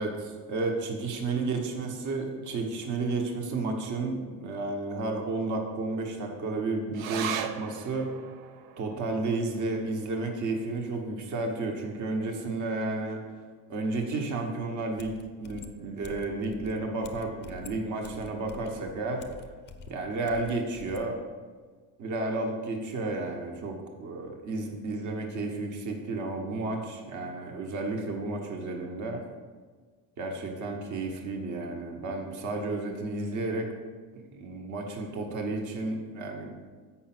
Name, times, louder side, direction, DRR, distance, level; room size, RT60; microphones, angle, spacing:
voice 1, 0.0-8.1 8.8-13.2 13.7-15.1 15.4-19.2 19.9-21.2 22.0-29.2 30.2-33.7 34.1-36.5, right 3 dB, 45° right, 2 dB, 1.2 m, -32 dB
sound 1, 6.9-13.7 14.0-14.1 14.5-15.1 15.7-15.8, right 8 dB, 80° right, 0.7 m, -41 dB
sound 2, 15.0-21.1, left 5 dB, 25° left, 0.5 m, -47 dB
8.0 x 5.7 x 5.9 m, 1.5 s
cardioid pair, 160°, 43 cm